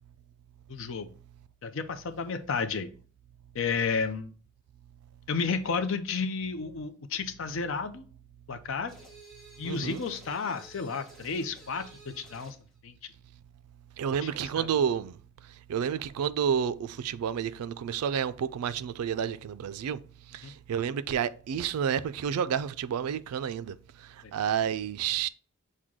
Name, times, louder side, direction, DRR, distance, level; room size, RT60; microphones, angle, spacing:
voice 1, 0.7-1.1 1.6-2.9 3.5-4.3 5.3-8.1 8.5-8.9 9.6-12.6 12.8-13.0 14.2-14.3 14.6-14.7 20.4-20.5 24.2-24.3, left 5 dB, 60° left, 0.5 m, -32 dB
sound 1, 8.9-12.6, right 2 dB, ahead, 1.0 m, -52 dB
voice 2, 9.6-10.0 14.0-15.2 15.7-20.0 20.3-23.8 24.3-25.3, right 8 dB, 90° right, 0.3 m, -30 dB
6.1 x 2.2 x 3.6 m
head